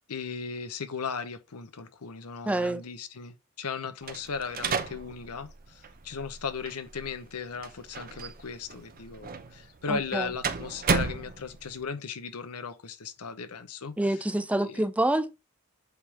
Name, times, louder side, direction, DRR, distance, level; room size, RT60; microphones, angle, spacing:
voice 1, 0.1-13.9 14.6-14.8, left 5 dB, 85° left, 0.8 m, -37 dB
voice 2, 2.5-2.8 9.9-10.3 14.0-15.3, right 1 dB, 5° right, 0.4 m, -27 dB
sound 1, 4.0-11.8, right 5 dB, 40° right, 0.7 m, -34 dB
8.0 x 3.6 x 3.4 m
head